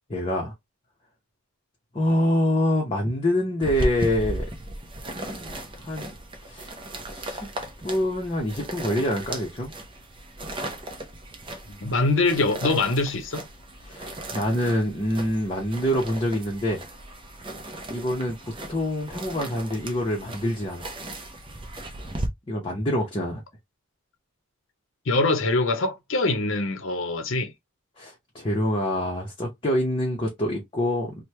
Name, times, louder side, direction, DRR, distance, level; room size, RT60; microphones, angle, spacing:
voice 1, 0.1-0.5 1.9-4.5 5.0-6.1 6.5-6.7 7.1-7.5 7.8-9.7 13.8-16.8 17.9-20.9 22.5-23.4 28.0-31.2, equal, 25° left, 0.7 m, -26 dB
sound 1, 3.6-22.3, right 1 dB, 20° right, 0.5 m, -36 dB
voice 2, 11.7-13.4 25.1-27.5, left 2 dB, 60° left, 0.7 m, -24 dB
3.1 x 2.1 x 3.2 m
head